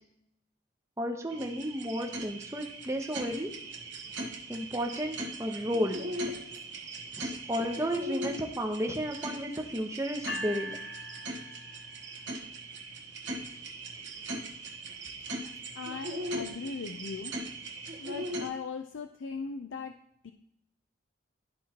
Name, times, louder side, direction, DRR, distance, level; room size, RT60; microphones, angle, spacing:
voice 1, 1.0-3.5 4.5-6.0 7.1-10.8, equal, 15° right, 2 dB, 0.8 m, -33 dB
sound 1, 1.3-18.5, right 1 dB, 70° right, 1.2 m, -39 dB
sound 2, 10.3-12.4, equal, 55° left, 0.7 m, -41 dB
voice 2, 15.8-17.3 18.0-19.9 20.2-20.3, left 5 dB, 85° left, 6 dB, 0.4 m, -39 dB
12.5 x 4.5 x 2.9 m, 0.76 s
head